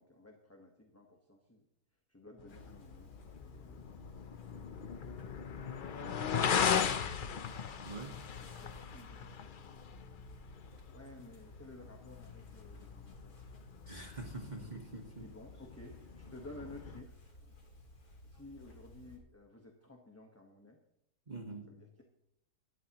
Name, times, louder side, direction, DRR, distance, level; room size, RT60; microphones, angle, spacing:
voice 1, 0.0-1.6 2.1-3.1 3.4-4.4 8.4-10.0 10.9-13.4 14.5-14.7 15.1-17.7 18.2-20.8 21.7-22.0, left 1 dB, 10° left, 1 dB, 1.1 m, -55 dB
sound 1, 2.4-17.0, left 7 dB, 55° left, 0.5 m, -39 dB
sound 2, 2.5-19.2, left 1 dB, 70° left, 2.8 m, -56 dB
voice 2, 7.8-8.2 13.9-15.3 21.3-21.7, right 2 dB, 30° right, 2 dB, 1.5 m, -45 dB
17.5 x 12.5 x 3.0 m, 0.78 s
omnidirectional pair, 1.6 m